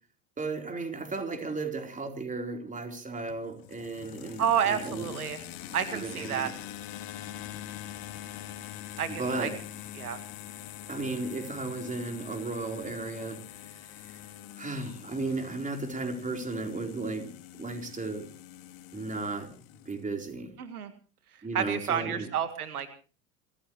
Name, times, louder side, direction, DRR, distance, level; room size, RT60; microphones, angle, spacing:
voice 1, 0.4-5.2 5.9-6.5 9.1-9.6 10.9-14.2 14.6-18.3 18.9-19.5 19.9-20.5 21.4-22.3, right 3 dB, 15° right, 4 dB, 4.1 m, -35 dB
sound 1, 3.3-20.0, left 12 dB, 50° left, 2.8 m, -44 dB
voice 2, 4.4-5.4 5.7-6.5 9.0-9.5 10.0-10.2 20.6-20.9 21.5-22.9, right 8 dB, 80° right, 10 dB, 1.9 m, -30 dB
27.5 x 15.0 x 3.2 m, 0.37 s
hypercardioid pair, 85°, 44 cm